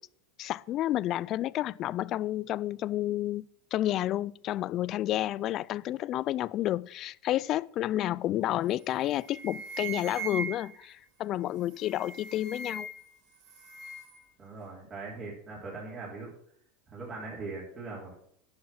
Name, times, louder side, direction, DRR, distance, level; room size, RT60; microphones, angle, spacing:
voice 1, 0.4-3.4 3.7-12.9, left 13 dB, 45° left, 0.3 m, -30 dB
sound 1, 8.7-8.9 9.2-10.8 11.7-13.1 13.4-14.2, right 4 dB, 60° right, 5.4 m, -40 dB
voice 2, 14.4-16.3 16.9-18.1, right 3 dB, 30° right, 3.6 m, -40 dB
10.5 x 6.5 x 5.9 m
hypercardioid pair, 110°, 0 cm